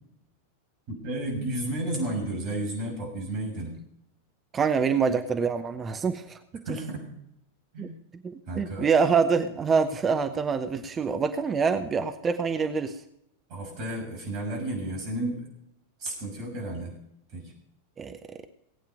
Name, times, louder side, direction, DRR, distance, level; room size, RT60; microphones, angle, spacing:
voice 1, 1.0-3.8 6.6-7.2 7.7-8.0 8.5-8.9 13.5-15.4 16.0-16.9 17.3-17.5, right 1 dB, 45° right, 1 dB, 6.4 m, -32 dB
voice 2, 4.5-6.4 7.8-7.9 8.6-13.0 18.0-18.2, right 5 dB, 20° right, 8 dB, 0.8 m, -25 dB
19.0 x 8.7 x 5.3 m, 0.76 s
figure-of-eight pair, 90°, 0 cm